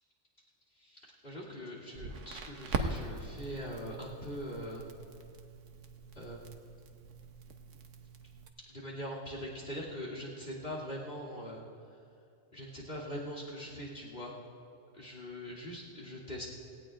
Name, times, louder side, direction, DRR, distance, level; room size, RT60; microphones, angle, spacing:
voice 1, 0.8-4.8 6.1-6.7 8.7-11.6 12.5-14.3 15.0-16.5, equal, 45° left, -3 dB, 3.1 m, -42 dB
Crackle, 1.9-8.5, right 3 dB, 80° right, 1.2 m, -41 dB
18.0 x 18.0 x 2.5 m, 2.6 s
omnidirectional pair, 1.3 m